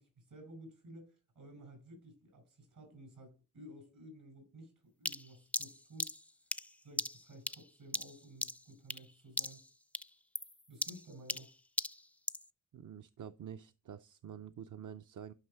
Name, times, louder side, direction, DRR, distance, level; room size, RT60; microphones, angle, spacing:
voice 1, 0.0-4.7 5.0-6.1 6.8-9.6 10.7-11.5, right 1 dB, 85° right, 5.3 m, -54 dB
sound 1, 5.1-9.1 9.4-9.7 9.9-12.5, left 1 dB, 5° left, 0.4 m, -39 dB
voice 2, 12.7-15.3, right 9 dB, 70° right, 0.6 m, -48 dB
11.5 x 5.6 x 4.3 m
cardioid pair, 75°, 32 cm